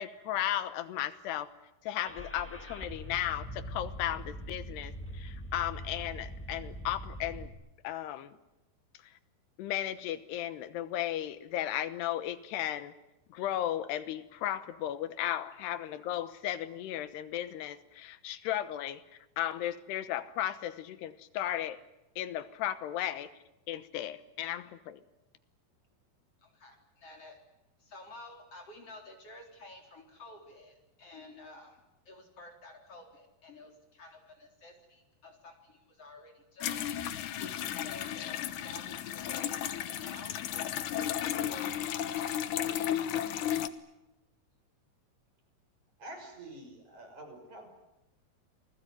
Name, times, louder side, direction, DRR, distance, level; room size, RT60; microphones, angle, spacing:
voice 1, 0.0-1.5 1.8-7.5 7.8-8.4 9.6-12.9 13.3-19.0 19.4-21.8 22.2-23.3 23.7-25.0, left 12 dB, 85° left, 13 dB, 3.2 m, -35 dB
Car / Engine starting, 2.0-7.5, equal, 5° left, 1.2 m, -42 dB
voice 2, 26.4-27.4 27.8-31.8 32.1-38.4 38.6-39.6 39.9-43.0, left 2 dB, 35° left, 3 dB, 4.7 m, -51 dB
sound 1, 36.6-43.7, left 10 dB, 65° left, 2.1 m, -34 dB
voice 3, 46.0-47.7, right 1 dB, 45° right, 3 dB, 7.1 m, -47 dB
28.5 x 20.0 x 9.6 m, 0.95 s
omnidirectional pair, 4.7 m